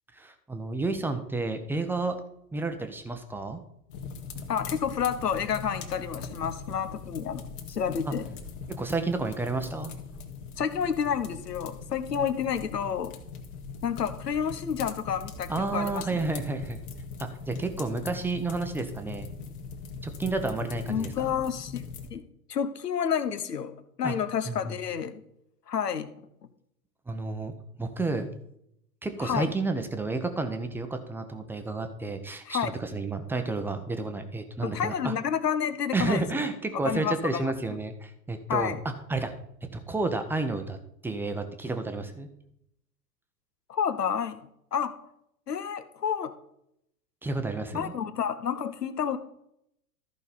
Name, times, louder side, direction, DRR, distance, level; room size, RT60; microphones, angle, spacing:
voice 1, 0.1-2.1 2.5-3.6 8.1-8.2 8.8-9.9 15.5-16.8 17.2-19.3 20.0-21.3 24.0-24.1 24.5-24.8 27.1-27.5 27.8-28.3 29.0-35.1 35.9-38.8 39.1-39.3 39.7-40.8 41.0-42.3 47.2-47.9, right 3 dB, 5° right, 7 dB, 0.7 m, -31 dB
sound 1, 3.9-22.1, left 5 dB, 35° left, 1.7 m, -41 dB
voice 2, 4.5-8.3 10.6-13.1 13.8-16.2 20.9-21.8 22.1-22.2 22.5-25.2 25.7-26.1 29.2-29.5 32.5-32.7 34.6-36.4 36.8-37.8 38.5-38.8 43.7-44.4 44.7-44.9 45.5-46.3 47.7-49.2, left 8 dB, 85° left, 11 dB, 1.1 m, -30 dB
14.0 x 5.2 x 4.2 m, 0.76 s
hypercardioid pair, 110°, 47 cm